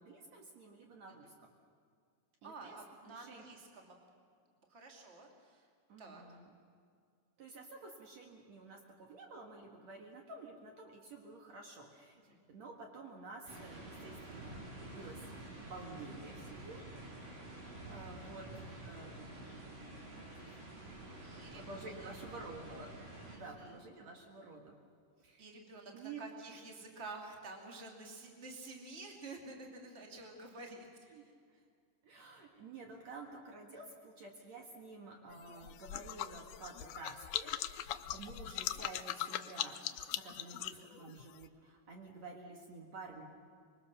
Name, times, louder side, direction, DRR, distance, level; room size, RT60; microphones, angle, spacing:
voice 1, 0.0-1.5 2.4-2.8 3.0-3.5 5.9-6.5 7.4-12.2 12.5-15.2 15.7-16.8 17.2-19.4 21.1-21.2 21.5-22.9 23.3-24.8 25.2-25.6 25.9-26.2 30.6-30.8 31.1-31.2 32.0-39.8 40.1-43.2, right 3 dB, 60° right, 1 dB, 2.9 m, -51 dB
voice 2, 2.4-3.9 4.7-5.6 6.0-6.2 12.3-12.4 21.2-22.1 23.2-23.8 25.4-30.9, right 3 dB, 20° right, 1 dB, 2.7 m, -50 dB
sound 1, 13.4-23.3, right 1 dB, 85° right, 6.8 m, -49 dB
sound 2, 35.3-41.5, left 12 dB, 75° left, 2.0 m, -41 dB
25.0 x 22.5 x 6.8 m, 2.2 s
omnidirectional pair, 3.8 m